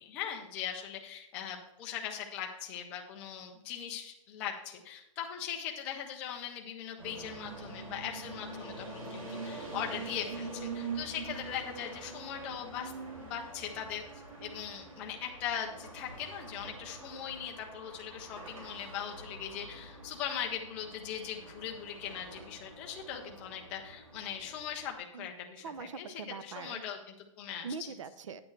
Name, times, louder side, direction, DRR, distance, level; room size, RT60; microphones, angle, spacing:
voice 1, 0.0-14.0 14.4-26.1 26.4-27.7, left 9 dB, 5° left, 1 dB, 0.3 m, -40 dB
sound 1, 7.0-24.9, right 3 dB, 80° right, 3.6 m, -45 dB
voice 2, 25.6-26.8 27.6-28.4, right 5 dB, 65° right, 13 dB, 0.7 m, -42 dB
9.6 x 6.4 x 4.6 m, 0.84 s
hypercardioid pair, 180°, 17 cm